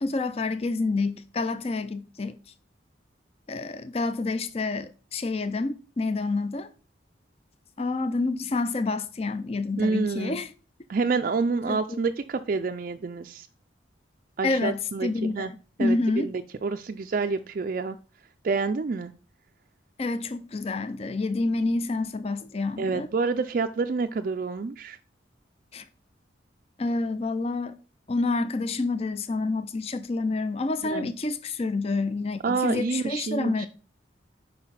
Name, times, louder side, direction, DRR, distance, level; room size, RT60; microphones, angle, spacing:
voice 1, 0.0-2.4 3.5-6.7 7.8-10.5 11.7-12.0 14.4-16.3 20.0-23.1 25.7-25.9 26.8-27.8 28.1-33.7, left 3 dB, 30° left, 0.4 m, -28 dB
voice 2, 9.8-10.4 10.9-13.5 14.4-15.5 15.8-16.0 16.2-18.0 18.4-19.1 22.8-25.0 30.8-31.1 32.4-33.7, right 4 dB, 45° right, 0.4 m, -28 dB
5.7 x 5.2 x 5.7 m
head